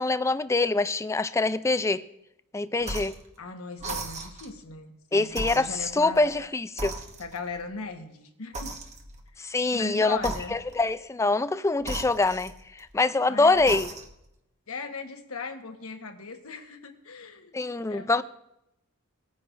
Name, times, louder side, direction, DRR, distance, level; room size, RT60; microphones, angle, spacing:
voice 1, 0.0-2.0 2.5-3.2 5.1-6.9 9.4-13.9 17.5-18.2, left 3 dB, 15° left, 0.3 m, -25 dB
sound 1, 2.8-3.3 3.8-4.6 5.3-6.4 6.8-7.6 8.5-9.3 10.2-10.9 11.8-12.9 13.5-14.3, right 2 dB, 35° right, 1.2 m, -37 dB
voice 2, 3.4-6.3 7.2-8.7 9.7-10.6 13.3-13.6 14.7-17.5 17.9-18.2, left 4 dB, 75° left, 1.3 m, -38 dB
19.0 x 9.6 x 2.5 m
head